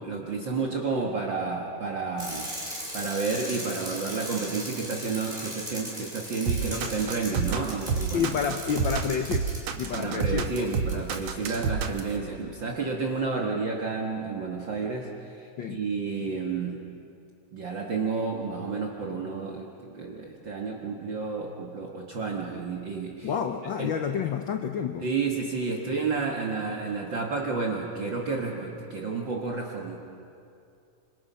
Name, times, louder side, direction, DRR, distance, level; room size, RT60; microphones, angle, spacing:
voice 1, 0.0-8.3 9.9-16.8 17.5-19.7 19.9-23.3 23.8-23.9 25.0-30.0, right 4 dB, 45° right, -1 dB, 2.1 m, -31 dB
Bicycle, 2.2-9.8 10.6-10.7 10.9-11.2, equal, 15° right, 6.0 m, -38 dB
sound 1, 6.5-12.1, right 5 dB, 65° right, 2.3 m, -28 dB
voice 2, 8.1-9.5 9.8-11.0 15.6-15.8 23.2-25.1, left 7 dB, 85° left, 6 dB, 1.0 m, -29 dB
26.5 x 26.5 x 5.7 m, 2.5 s
omnidirectional pair, 3.4 m